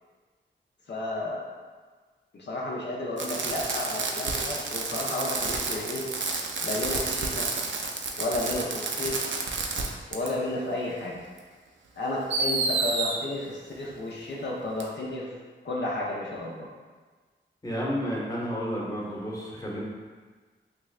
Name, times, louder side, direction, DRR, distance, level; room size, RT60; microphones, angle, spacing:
voice 1, 0.9-1.4 2.3-6.0 6.6-7.5 8.2-9.3 10.1-11.2 11.9-15.3 15.6-16.7, left 2 dB, 65° left, -4 dB, 0.5 m, -32 dB
Fireworks, 3.2-9.9 10.1-10.3 11.4-11.5 12.3-13.2 14.8-14.9, right 4 dB, 70° right, 0.4 m, -30 dB
voice 2, 17.6-19.8, equal, 20° left, -4 dB, 0.8 m, -31 dB
3.2 x 2.4 x 3.1 m, 1.4 s
cardioid pair, 60°, 20 cm